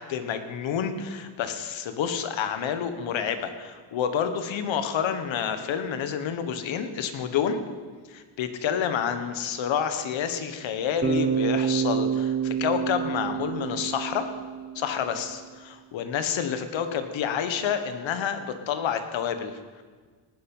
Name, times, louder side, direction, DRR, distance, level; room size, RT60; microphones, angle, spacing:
voice 1, 0.0-7.6 8.1-14.3 14.7-19.8, left 8 dB, 70° left, 8 dB, 1.4 m, -29 dB
Bass guitar, 11.0-15.1, right 7 dB, 20° right, 1.3 m, -28 dB
18.5 x 7.2 x 5.6 m, 1.5 s
cardioid pair, 80°, 47 cm